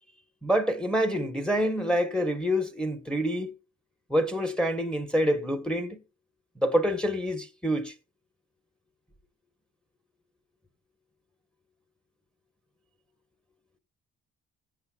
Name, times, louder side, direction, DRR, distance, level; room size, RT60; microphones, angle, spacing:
voice 1, 0.4-3.5 4.1-6.0 6.6-7.9, equal, 5° left, 1.6 m, -26 dB
18.5 x 8.2 x 2.5 m
cardioid pair, 90°, 30 cm